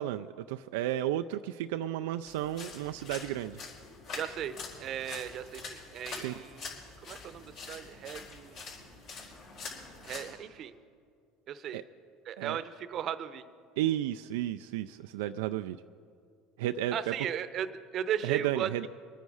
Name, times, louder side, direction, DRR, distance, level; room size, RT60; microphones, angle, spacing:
voice 1, 0.0-3.6 6.2-6.4 11.7-11.8 12.4-12.6 13.8-15.8 16.6-17.1 18.2-18.9, right 13 dB, 85° right, 9 dB, 0.3 m, -33 dB
sound 1, 2.3-10.3, left 4 dB, 60° left, 4.6 m, -45 dB
voice 2, 4.1-6.7 7.0-8.6 10.0-10.7 11.5-11.8 12.3-13.5 16.9-18.9, right 9 dB, 50° right, 13 dB, 0.8 m, -36 dB
24.0 x 9.5 x 4.9 m, 2.3 s
supercardioid pair, 105°, 0 cm